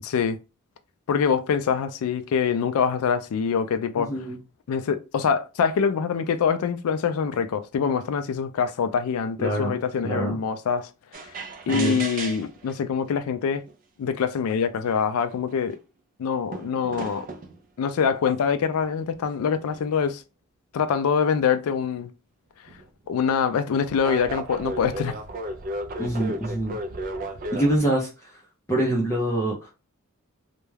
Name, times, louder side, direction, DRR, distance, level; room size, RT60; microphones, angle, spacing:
voice 1, 0.0-0.4 1.1-4.1 4.7-10.9 11.7-13.6 14.0-15.8 16.2-17.2 17.8-20.2 20.7-22.1 23.1-25.2, left 6 dB, 75° left, 0.3 m, -24 dB
voice 2, 3.9-4.4 9.4-9.8 10.0-10.4 11.7-12.0 26.0-26.8 27.5-28.4 28.7-29.7, right 1 dB, 15° left, 0.5 m, -25 dB
sound 1, 11.1-12.7 13.7-13.8 14.5-14.6 14.8-15.7 16.5-17.6 18.5-20.0 22.7-22.8 23.9-27.8, right 1 dB, 40° right, 0.3 m, -35 dB
2.3 x 2.1 x 3.1 m
head